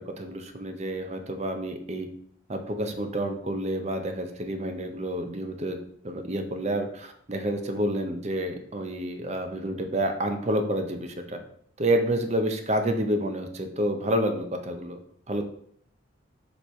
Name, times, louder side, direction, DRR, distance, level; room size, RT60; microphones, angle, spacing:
voice 1, 0.0-2.1 2.5-5.8 6.0-11.4 11.8-15.0 15.3-15.4, right 1 dB, 35° right, 6 dB, 0.6 m, -29 dB
6.9 x 3.2 x 4.3 m, 0.66 s
head